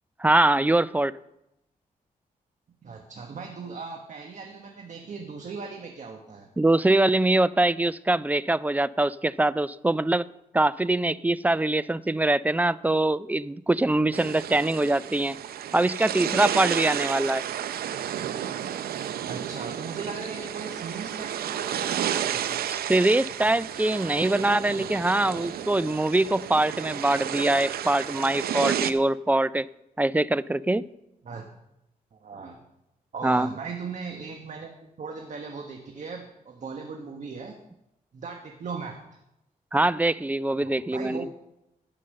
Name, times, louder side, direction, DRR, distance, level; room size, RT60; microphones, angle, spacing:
voice 1, 0.2-1.1 6.6-10.3 10.5-15.4 15.7-17.4 22.7-29.7 30.0-30.9 33.2-33.5 39.7-41.3, right 2 dB, 10° right, 18 dB, 0.3 m, -23 dB
voice 2, 2.8-6.5 19.3-22.7 31.2-31.4 32.1-32.6 33.1-37.5 38.1-39.0 40.6-41.3, right 5 dB, 55° right, 3 dB, 1.3 m, -38 dB
sound 1, 14.1-28.9, right 10 dB, 90° right, 0.6 m, -32 dB
15.0 x 5.5 x 6.5 m, 0.88 s
cardioid pair, 85°, 15 cm